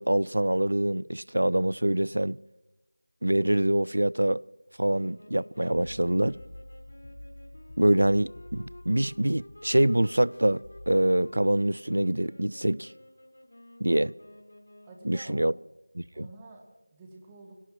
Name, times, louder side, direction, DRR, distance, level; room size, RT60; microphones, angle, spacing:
voice 1, 0.0-2.4 3.2-4.4 4.8-6.4 7.8-12.9 13.8-14.1 15.1-15.5 16.2-16.3, right 1 dB, 80° right, 0.4 m, -25 dB
sound 1, 4.9-15.2, left 1 dB, 60° left, 4.4 m, -51 dB
sound 2, 5.7-11.0, left 1 dB, 35° left, 4.4 m, -47 dB
voice 2, 14.8-15.5 16.1-17.6, right 3 dB, 10° right, 1.3 m, -49 dB
25.5 x 17.5 x 3.0 m
figure-of-eight pair, 175°, 0 cm